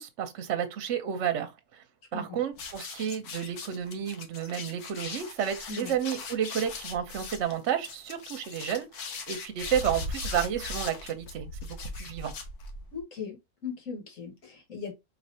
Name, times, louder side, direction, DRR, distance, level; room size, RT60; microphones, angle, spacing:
voice 1, 0.0-1.8 2.1-12.3, right 9 dB, 60° right, 1.0 m, -31 dB
sound 1, 2.5-13.0, left 3 dB, 85° left, 1.4 m, -39 dB
voice 2, 12.9-13.4 13.6-14.9, left 5 dB, 60° left, 1.9 m, -38 dB
4.6 x 3.2 x 2.7 m
omnidirectional pair, 1.6 m